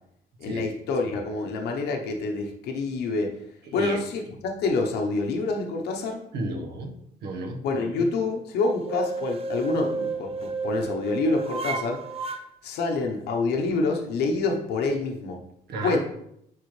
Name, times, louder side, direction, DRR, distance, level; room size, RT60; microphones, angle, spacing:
voice 1, 0.4-3.3 3.7-6.2 7.6-10.3 10.6-12.0 12.6-15.4 15.8-16.0, left 3 dB, 75° left, 2 dB, 1.0 m, -27 dB
voice 2, 3.6-4.0 6.3-7.0 7.2-7.6 15.7-16.0, right 2 dB, 70° right, 2 dB, 1.3 m, -33 dB
sound 1, 8.8-12.4, right 3 dB, 35° right, 0.7 m, -31 dB
9.5 x 3.9 x 3.3 m, 0.75 s
cardioid pair, 110°, 17 cm